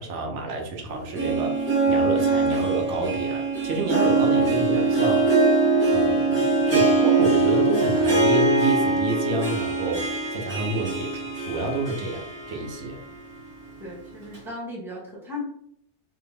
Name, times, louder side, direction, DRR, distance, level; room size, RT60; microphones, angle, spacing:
voice 1, 0.0-5.3 5.9-13.0, right 3 dB, 80° right, 2 dB, 1.1 m, -29 dB
Harp, 0.9-13.0 13.4-13.5 14.3-14.4, right 3 dB, 60° right, 1.8 m, -22 dB
voice 2, 13.8-15.4, left 2 dB, ahead, -2 dB, 0.8 m, -36 dB
3.7 x 2.2 x 3.4 m, 0.69 s
omnidirectional pair, 1.2 m